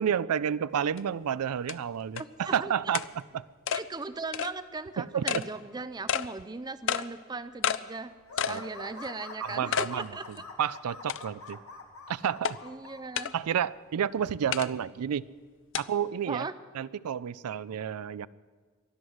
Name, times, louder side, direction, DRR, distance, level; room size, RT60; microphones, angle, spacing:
voice 1, 0.0-3.1 3.3-3.4 5.0-5.5 8.5-9.0 9.4-11.6 12.1-12.6 13.3-15.2 15.8-16.5 16.7-18.3, right 8 dB, 90° right, 18 dB, 0.4 m, -30 dB
sound 1, 1.0-1.1 1.7-1.8 2.2-2.3 2.9-3.1 3.7-3.8 4.3-4.5 5.3-5.5 6.1-6.3 6.9-7.1 7.6-7.8 8.4-8.6 9.0-9.1 9.7-9.9 10.4-10.5 11.1-11.5 12.4-12.6 13.2-13.3 14.5-14.7 15.7-15.8, left 8 dB, 55° left, 0.4 m, -29 dB
voice 2, 2.2-2.7 3.7-8.1 8.4-10.2 12.6-13.3 16.3-16.5, right 3 dB, 20° right, 13 dB, 0.5 m, -38 dB
sound 2, 8.3-13.0, left 3 dB, 75° left, 1.9 m, -44 dB
23.5 x 9.6 x 6.4 m, 1.5 s
head